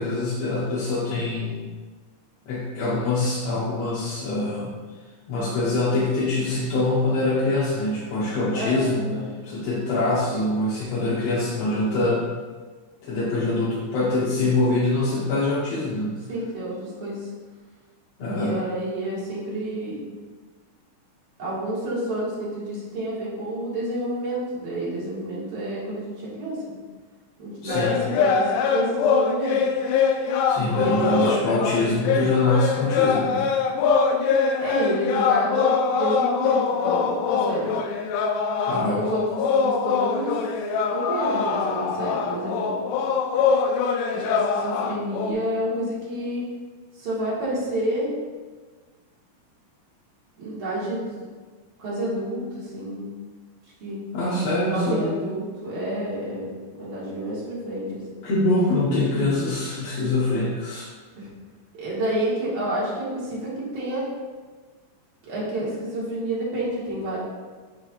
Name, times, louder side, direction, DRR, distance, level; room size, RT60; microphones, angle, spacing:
voice 1, 0.0-1.7 2.5-4.7 5.3-9.0 9.4-12.2 13.0-16.2 18.2-18.6 27.6-28.0 30.5-33.4 38.7-39.0 54.1-55.2 58.2-60.9, left 2 dB, 65° left, -8 dB, 1.9 m, -24 dB
voice 2, 8.5-9.3 16.3-17.3 18.3-20.0 21.4-26.8 27.4-29.6 30.7-31.3 34.6-37.7 38.7-40.4 40.9-42.7 44.1-46.5 46.9-48.2 50.4-51.2 51.8-53.1 53.8-54.0 54.7-58.2 61.2-61.3 61.7-64.1 65.2-67.2, right 1 dB, 45° right, -7 dB, 2.4 m, -29 dB
sound 1, 27.7-45.3, left 6 dB, 85° left, 2.1 m, -23 dB
9.9 x 4.7 x 2.4 m, 1.4 s
omnidirectional pair, 3.6 m